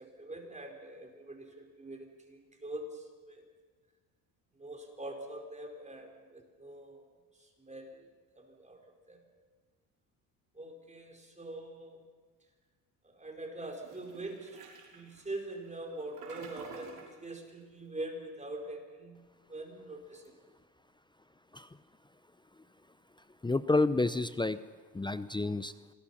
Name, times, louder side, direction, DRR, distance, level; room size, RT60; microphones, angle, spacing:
voice 1, 0.0-3.4 4.6-7.0 7.3-8.1 8.4-8.8 9.1-9.2 10.5-12.0 13.0-14.6 14.9-19.2 19.5-20.3, right 1 dB, 15° right, 2 dB, 4.9 m, -44 dB
Toilet flush, 13.7-17.2, right 5 dB, 60° right, 6.3 m, -50 dB
voice 2, 23.4-24.6 24.9-25.7, left 2 dB, 10° left, 14 dB, 0.7 m, -29 dB
26.5 x 21.5 x 5.9 m, 1.4 s
supercardioid pair, 90°, 41 cm